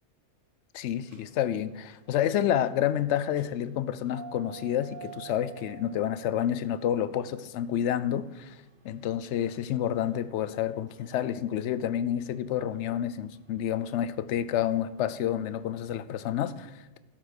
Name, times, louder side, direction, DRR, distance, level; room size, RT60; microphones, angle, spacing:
voice 1, 0.7-8.6 8.8-17.0, left 10 dB, 80° left, 0.9 m, -29 dB
sound 1, 1.0-15.8, right 9 dB, 50° right, 1.2 m, -52 dB
12.5 x 5.8 x 5.2 m
omnidirectional pair, 1.2 m